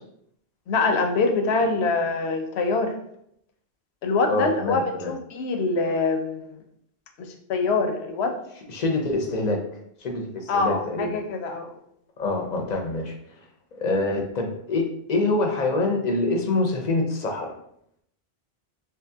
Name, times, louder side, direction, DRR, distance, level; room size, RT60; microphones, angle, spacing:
voice 1, 0.7-2.9 4.0-6.6 7.5-8.3 10.5-11.7, left 3 dB, 85° left, 5 dB, 0.9 m, -24 dB
voice 2, 4.3-5.1 8.7-9.6 10.0-11.1 12.2-13.1 13.7-17.5, left 2 dB, 50° left, 2 dB, 0.7 m, -25 dB
3.0 x 2.8 x 3.4 m, 0.72 s
omnidirectional pair, 1.1 m